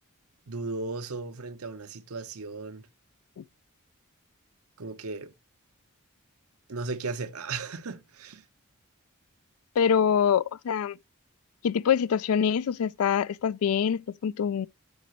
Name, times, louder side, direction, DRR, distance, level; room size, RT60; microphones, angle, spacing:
voice 1, 0.5-2.9 4.8-5.3 6.7-8.4, right 3 dB, 85° right, 0.9 m, -36 dB
voice 2, 9.8-11.0 11.6-14.7, left 7 dB, 80° left, 0.4 m, -25 dB
12.5 x 5.1 x 3.0 m
head